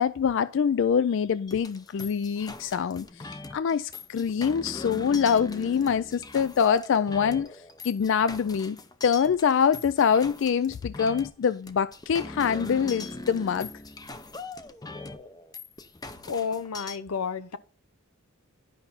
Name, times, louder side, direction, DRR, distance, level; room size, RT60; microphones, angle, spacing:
voice 1, 0.0-7.5 7.8-8.8 9.0-13.7, left 7 dB, 55° left, 0.3 m, -25 dB
sound 1, 1.5-17.0, left 3 dB, 15° left, 0.6 m, -41 dB
voice 2, 16.3-17.6, left 6 dB, 90° left, 0.8 m, -31 dB
11.0 x 5.6 x 4.0 m
head